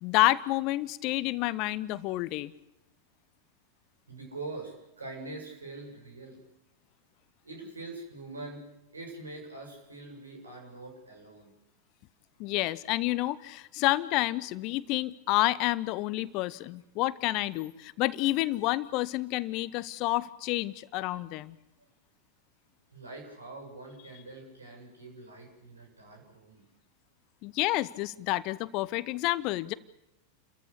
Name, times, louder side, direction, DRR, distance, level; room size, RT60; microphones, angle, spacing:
voice 1, 0.0-2.5 12.4-21.5 27.4-29.7, left 18 dB, 40° left, 18 dB, 0.8 m, -29 dB
voice 2, 4.1-6.4 7.4-11.5 21.3-21.9 22.9-26.6, right 2 dB, 75° right, 1 dB, 7.5 m, -44 dB
29.5 x 14.5 x 8.4 m, 0.88 s
figure-of-eight pair, 90°, 0 cm